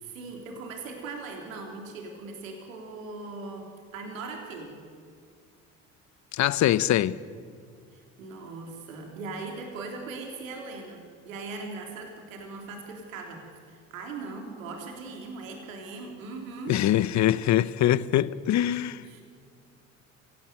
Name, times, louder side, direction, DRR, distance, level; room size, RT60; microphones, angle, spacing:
voice 1, 0.0-4.8 7.9-16.8 19.0-19.2, right 3 dB, 80° right, 3.4 m, -39 dB
voice 2, 6.3-7.2 16.7-19.0, left 12 dB, 45° left, 0.9 m, -23 dB
24.0 x 17.0 x 9.0 m
hypercardioid pair, 65°, 39 cm